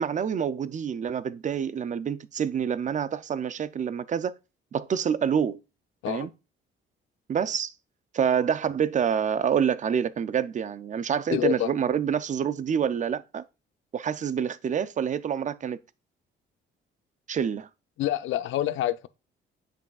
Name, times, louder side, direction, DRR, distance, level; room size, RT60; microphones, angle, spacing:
voice 1, 0.0-4.3 4.7-5.6 6.1-6.3 7.3-7.7 8.1-13.4 13.9-15.8 17.3-17.7, right 8 dB, 40° right, 0.4 m, -27 dB
voice 2, 11.3-11.7 18.0-19.1, left 13 dB, 75° left, 0.5 m, -27 dB
7.7 x 5.9 x 2.3 m
cardioid pair, 90°, 20 cm